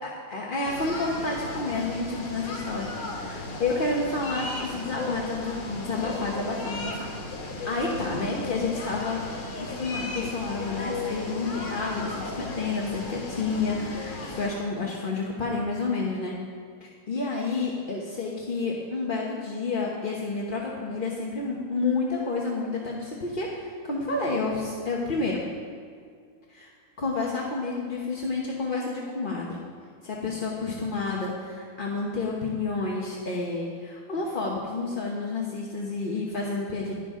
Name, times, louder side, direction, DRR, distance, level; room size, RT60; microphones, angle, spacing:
voice 1, 0.0-7.1 7.6-9.2 9.5-16.4 16.8-25.4 26.5-26.7 27.0-29.6 30.0-36.9, left 3 dB, 35° left, -3 dB, 0.8 m, -30 dB
sound 1, 0.6-14.5, left 2 dB, 85° left, 3.1 m, -35 dB
15.5 x 11.5 x 3.7 m, 2.2 s
omnidirectional pair, 2.3 m